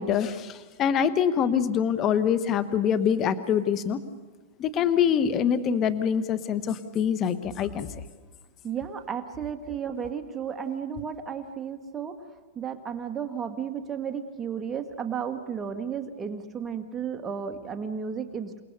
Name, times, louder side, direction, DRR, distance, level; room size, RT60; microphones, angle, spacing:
voice 1, 0.0-4.0 4.6-7.9, left 8 dB, 30° left, 13 dB, 1.2 m, -25 dB
voice 2, 8.6-12.2 12.5-18.6, right 7 dB, 15° right, 6 dB, 1.8 m, -33 dB
28.5 x 19.0 x 6.8 m, 1.3 s
hypercardioid pair, 140°, 0 cm